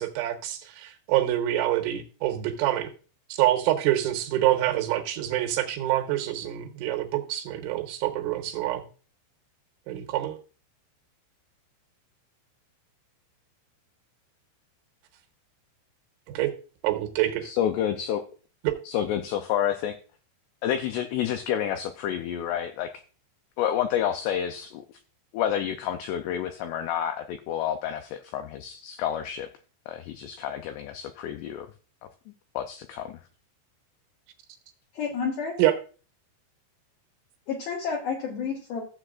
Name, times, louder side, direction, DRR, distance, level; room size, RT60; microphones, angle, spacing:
voice 1, 0.0-2.9 3.4-8.8 9.9-10.4 16.3-16.5 16.8-17.5 18.6-18.7 35.6-35.7, right 14 dB, 80° right, 5 dB, 3.4 m, -26 dB
voice 2, 17.4-18.2 18.9-20.0 20.6-22.9 23.6-25.0 25.3-29.5 29.9-31.7 32.6-33.1, left 10 dB, 85° left, 7 dB, 2.4 m, -29 dB
voice 3, 35.0-35.6 37.5-38.8, left 6 dB, 65° left, -1 dB, 2.6 m, -30 dB
15.0 x 7.7 x 2.5 m, 0.37 s
omnidirectional pair, 5.5 m